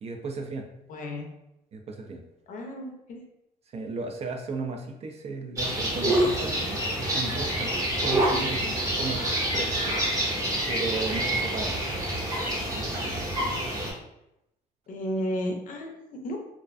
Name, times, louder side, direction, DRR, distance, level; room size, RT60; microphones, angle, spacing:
voice 1, 0.0-0.7 1.7-2.2 3.7-8.6 9.0-9.2 9.5-10.0 10.7-11.7 12.7-13.1, right 3 dB, 40° right, 3 dB, 0.4 m, -35 dB
voice 2, 0.9-1.3 2.5-3.3 8.5-8.8 14.9-16.4, equal, 50° left, 2 dB, 0.5 m, -33 dB
sound 1, 5.6-13.9, right 1 dB, 20° right, 0.8 m, -27 dB
2.4 x 2.1 x 2.4 m, 0.85 s
cardioid pair, 110°, 17 cm